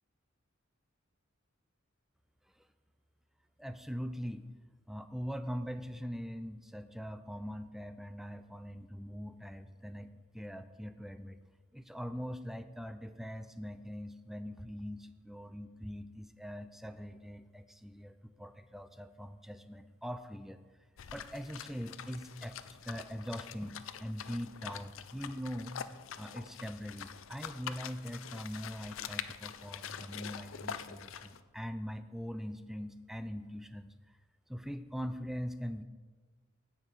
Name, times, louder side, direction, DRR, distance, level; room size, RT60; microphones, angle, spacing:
voice 1, 3.6-4.5 4.9-11.4 11.7-20.6 21.1-25.8 26.2-33.9 34.5-35.8, equal, ahead, 10 dB, 0.4 m, -42 dB
sound 1, 21.0-31.4, left 8 dB, 70° left, 0.5 m, -45 dB
16.5 x 5.8 x 4.8 m, 1.4 s
head